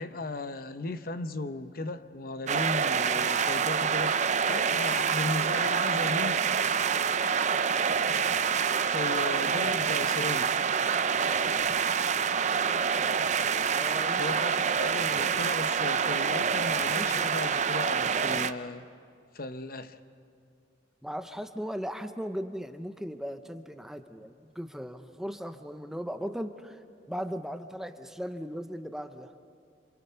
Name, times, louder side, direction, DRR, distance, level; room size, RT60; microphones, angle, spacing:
voice 1, 0.0-4.2 4.4-6.4 8.9-10.5 14.2-18.8 19.3-20.0, left 2 dB, 50° left, 0.8 m, -36 dB
sound 1, 2.5-18.5, right 6 dB, 40° right, 0.5 m, -27 dB
voice 2, 13.7-14.4 16.9-17.3 21.0-29.3, equal, 5° right, 0.7 m, -38 dB
28.5 x 27.0 x 5.7 m
head